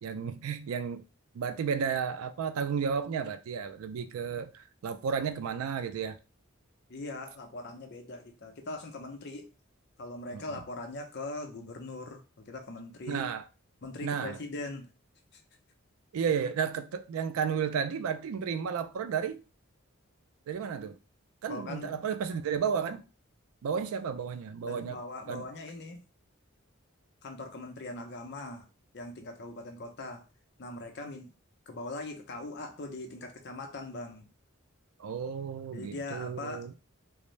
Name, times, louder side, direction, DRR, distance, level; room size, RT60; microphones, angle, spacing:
voice 1, 0.0-1.0 1.3-6.2 10.3-10.5 13.1-13.4 14.0-14.4 16.1-19.4 20.5-21.0 21.4-23.0 23.6-25.0 25.3-25.4 35.0-36.7, right 6 dB, 90° right, 0.3 m, -32 dB
voice 2, 6.9-9.5 10.0-13.2 13.8-14.9 21.5-22.0 24.6-26.0 27.2-28.7 28.9-30.2 30.6-31.3 31.7-34.3 35.7-36.7, left 2 dB, 50° left, 0.5 m, -41 dB
2.5 x 2.0 x 3.1 m
head